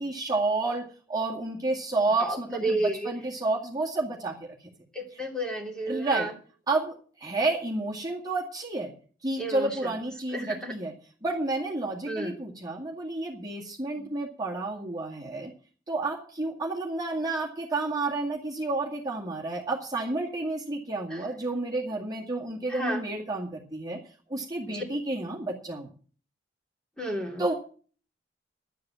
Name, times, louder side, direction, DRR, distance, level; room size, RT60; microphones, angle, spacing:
voice 1, 0.0-4.3 5.9-6.3 6.7-8.9 9.2-10.9 11.2-15.5 15.9-24.0 24.3-25.9 27.4-27.5, right 2 dB, 20° right, -3 dB, 2.2 m, -30 dB
voice 2, 2.6-3.1 4.9-6.3 9.4-9.7 10.3-10.7 12.1-12.3 14.0-14.1 22.7-23.0 24.7-24.8 27.0-27.4, right 1 dB, 5° left, 0 dB, 2.7 m, -31 dB
11.5 x 8.4 x 7.6 m, 0.42 s
head